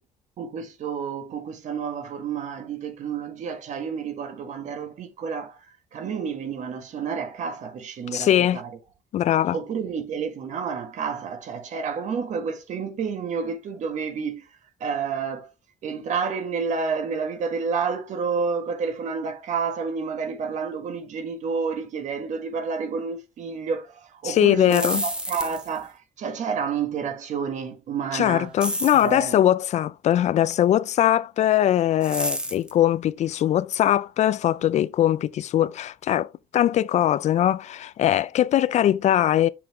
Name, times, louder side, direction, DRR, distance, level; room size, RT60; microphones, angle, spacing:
voice 1, 0.4-5.6 5.9-8.8 9.5-14.5 14.8-15.5 15.8-28.6 28.9-29.4, right 5 dB, 60° right, 1.7 m, -30 dB
voice 2, 8.1-8.6 9.1-9.6 24.2-25.0 28.1-39.5, left 11 dB, 55° left, 0.4 m, -21 dB
sound 1, 24.5-25.8 28.6-29.1 32.0-32.7, right 1 dB, 5° right, 1.3 m, -29 dB
6.9 x 5.6 x 3.6 m
cardioid pair, 125°, 14 cm